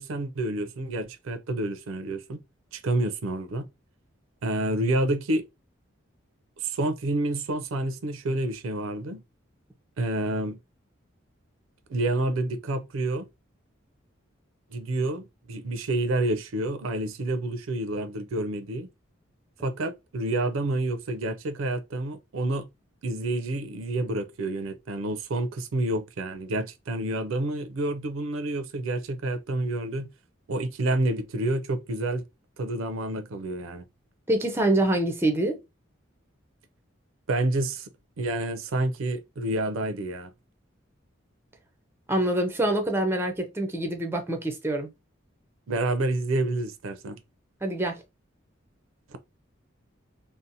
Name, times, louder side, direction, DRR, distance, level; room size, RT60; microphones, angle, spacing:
voice 1, 0.0-2.4 2.7-3.7 4.4-5.4 6.6-9.2 10.0-10.6 11.9-13.3 14.7-18.9 19.6-22.6 23.0-30.1 30.5-32.2 32.6-33.8 37.3-37.9 38.2-40.3 45.7-47.2 49.1-49.2, right 2 dB, 85° right, 0.4 m, -28 dB
voice 2, 34.3-35.6 42.1-44.9 47.6-48.0, right 1 dB, 10° right, 0.4 m, -25 dB
2.7 x 2.0 x 2.6 m
head